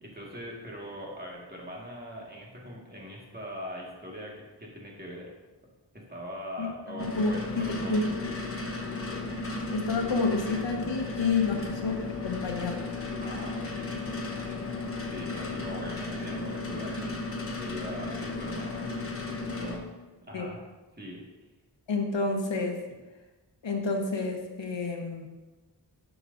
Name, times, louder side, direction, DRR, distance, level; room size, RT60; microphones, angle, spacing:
voice 1, 0.0-5.3 5.9-8.2 11.5-12.0 13.2-14.7 15.1-17.2 17.6-18.9 19.1-19.2 19.5-19.9 20.3-20.6 21.0-21.2, equal, 20° right, -2 dB, 1.7 m, -42 dB
voice 2, 6.6-8.1 9.7-12.8 20.3-20.5 21.9-22.8 23.6-25.3, left 4 dB, 85° left, 2 dB, 1.2 m, -29 dB
Old Heater Fan, 7.0-19.8, left 3 dB, 30° left, 0.9 m, -35 dB
10.5 x 6.1 x 2.6 m, 1.2 s
wide cardioid pair, 95°, 43 cm